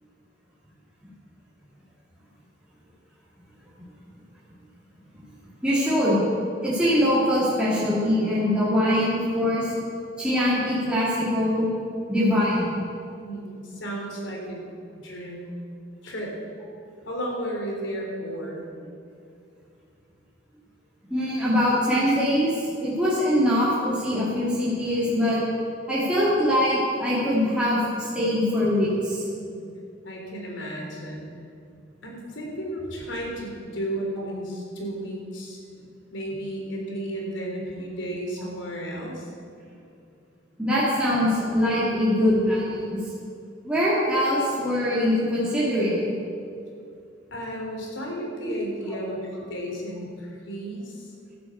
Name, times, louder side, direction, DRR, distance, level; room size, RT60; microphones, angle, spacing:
voice 1, 5.6-6.2 6.6-9.7 10.2-11.7 12.1-12.8 21.1-25.4 25.9-29.2 40.6-43.0 43.6-46.1 48.5-48.6, left 1 dB, 5° right, -9 dB, 2.9 m, -23 dB
voice 2, 13.2-14.6 14.9-15.5 16.0-16.4 17.1-18.6 29.3-29.6 30.0-31.2 32.0-35.6 36.1-39.3 47.3-51.1, right 1 dB, 85° left, 0 dB, 3.5 m, -33 dB
13.5 x 9.7 x 8.1 m, 2.5 s
head